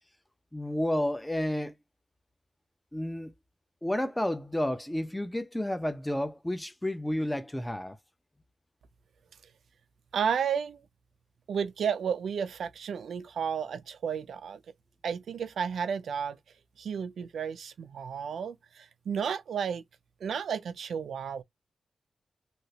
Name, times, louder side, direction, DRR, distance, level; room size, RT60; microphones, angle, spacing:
voice 1, 0.5-1.7 2.9-3.3 3.8-8.0, left 1 dB, 10° left, 0.4 m, -31 dB
voice 2, 10.1-10.8 11.5-14.6 15.0-16.4 16.8-19.8 20.2-21.4, right 7 dB, 85° right, 0.5 m, -32 dB
3.1 x 2.8 x 2.8 m
wide cardioid pair, 110°, 0 cm